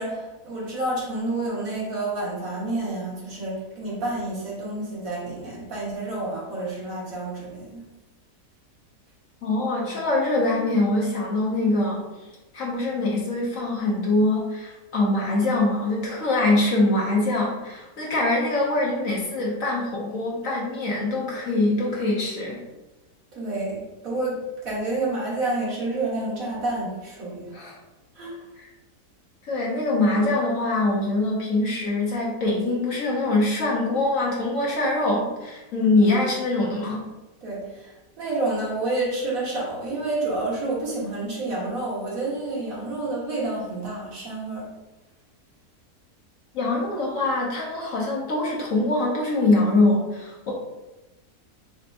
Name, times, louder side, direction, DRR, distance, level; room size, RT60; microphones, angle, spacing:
voice 1, 0.0-7.8 23.3-27.5 28.1-28.5 37.4-37.9 38.2-44.7, right 2 dB, 60° right, -5 dB, 1.7 m, -29 dB
voice 2, 9.4-12.0 12.5-22.6 27.5-27.7 28.6-28.7 29.4-37.0 46.5-50.5, left 2 dB, 55° left, -3 dB, 1.2 m, -23 dB
6.7 x 2.9 x 2.6 m, 1.1 s
omnidirectional pair, 1.8 m